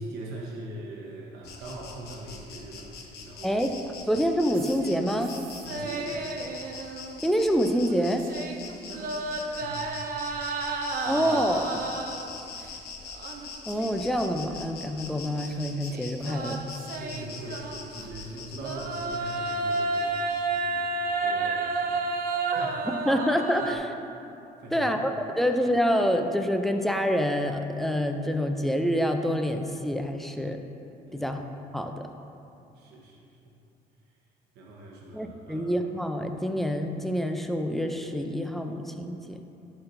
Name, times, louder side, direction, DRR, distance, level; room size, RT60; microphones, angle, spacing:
voice 1, 0.0-3.6 4.0-4.1 5.6-6.6 8.8-11.3 12.1-12.4 16.8-20.2 20.5-22.9 23.6-23.7 24.6-25.2 31.0-31.3 32.7-33.5 34.5-35.7, right 1 dB, 80° right, -3 dB, 1.0 m, -42 dB
Insect, 1.4-20.6, left 5 dB, 70° left, 0.8 m, -43 dB
voice 2, 4.1-5.3 7.2-8.3 11.1-11.8 13.7-16.6 22.9-23.9 24.7-25.1 25.4-30.6 31.1-31.5 31.7-32.1 35.1-39.4, equal, ahead, 5 dB, 0.4 m, -27 dB
sound 1, 4.5-7.4 7.7-12.4 13.1-14.2 14.5-14.6 15.9-18.1 18.6-23.8, right 3 dB, 60° right, 0.6 m, -32 dB
11.0 x 4.4 x 2.6 m, 2.8 s
cardioid pair, 110°, 17 cm